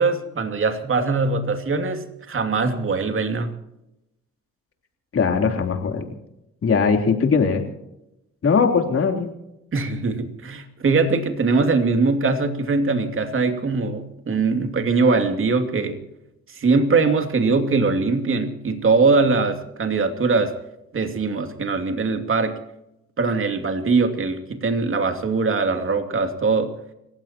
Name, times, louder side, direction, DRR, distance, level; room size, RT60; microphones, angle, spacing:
voice 1, 0.0-3.5 9.7-16.0 16.5-20.5 20.9-22.6 23.2-26.7, right 4 dB, 45° right, 6 dB, 2.6 m, -21 dB
voice 2, 5.1-6.1 6.6-7.6 8.4-9.3, left 5 dB, 50° left, 3 dB, 3.4 m, -20 dB
30.0 x 16.0 x 2.9 m, 0.88 s
cardioid pair, 90°, 30 cm